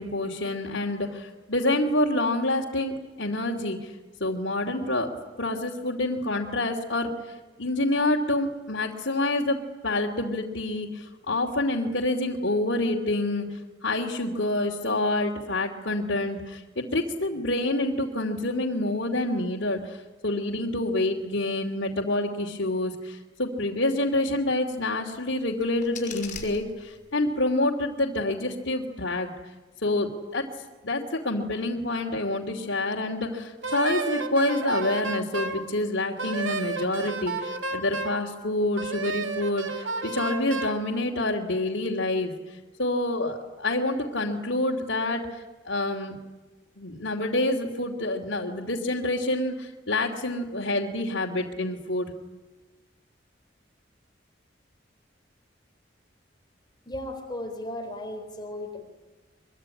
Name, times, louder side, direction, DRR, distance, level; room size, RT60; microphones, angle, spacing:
voice 1, 0.0-5.1 5.4-29.3 29.8-30.4 30.8-46.1 46.8-52.1, left 2 dB, 70° left, -2 dB, 2.8 m, -27 dB
sound 1, 25.3-27.3, left 6 dB, 40° left, 6.6 m, -43 dB
Wind instrument woodwind instrument, 33.6-35.6 36.2-38.2 38.8-40.8, right 3 dB, 90° right, 2.5 m, -31 dB
voice 2, 56.9-58.9, left 1 dB, 20° left, 5 dB, 4.1 m, -35 dB
24.5 x 23.0 x 9.9 m, 1.2 s
head